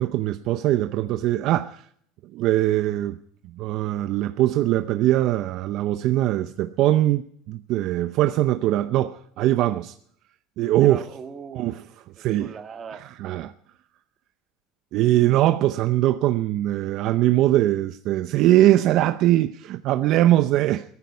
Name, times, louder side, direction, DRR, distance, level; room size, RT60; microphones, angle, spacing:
voice 1, 0.0-1.8 2.3-3.2 3.5-9.9 10.6-11.0 11.6-11.7 12.2-12.5 13.2-13.5 14.9-20.8, right 14 dB, 55° right, 0.6 m, -21 dB
voice 2, 10.8-11.8 12.4-13.1 20.1-20.4, right 6 dB, 30° right, 1.8 m, -40 dB
17.0 x 14.0 x 5.5 m
supercardioid pair, 135°, 0 cm